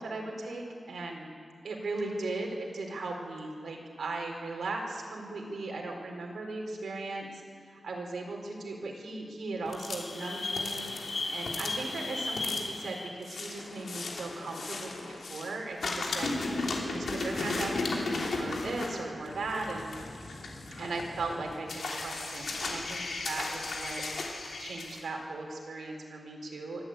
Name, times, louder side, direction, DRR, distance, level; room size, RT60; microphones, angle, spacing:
voice 1, 0.0-1.3 1.6-7.4 7.7-10.9 11.3-16.4 16.9-19.9 20.8-24.0 24.6-26.8, right 2 dB, 90° right, 0 dB, 4.3 m, -37 dB
sound 1, 9.7-15.5 15.8-25.0, left 3 dB, 70° left, 3.4 m, -35 dB
24.0 x 13.0 x 9.2 m, 2.1 s
wide cardioid pair, 125°, 0 cm